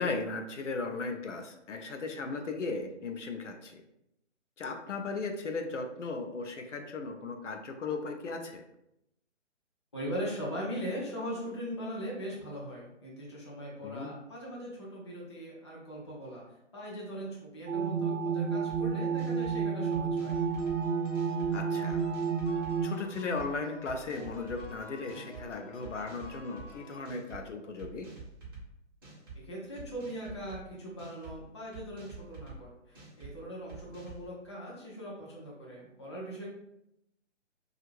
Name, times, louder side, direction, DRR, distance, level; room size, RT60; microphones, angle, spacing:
voice 1, 0.0-3.8 4.6-8.6 13.8-14.1 21.5-22.0 22.5-28.1, left 3 dB, 70° left, 4 dB, 0.6 m, -36 dB
voice 2, 9.9-16.4 16.7-20.4 29.4-36.5, equal, 25° left, -4 dB, 0.4 m, -40 dB
sound 1, 17.7-22.9, right 6 dB, 60° right, 0.6 m, -30 dB
sound 2, 18.7-18.8 19.2-19.6 19.9-20.8 21.1-21.5 21.9-22.7 23.1-23.5 23.9-24.7 25.1-25.4 25.8-26.7 27.1-27.4 27.8-28.6 29.0-29.4 29.8-30.6 31.0-31.4 31.7-32.6 33.0-33.3 33.7-34.2, right 4 dB, 20° right, 0.6 m, -47 dB
sound 3, 20.3-27.1, left 1 dB, 45° left, 0.9 m, -51 dB
2.6 x 2.4 x 3.0 m, 0.82 s
figure-of-eight pair, 140°, 37 cm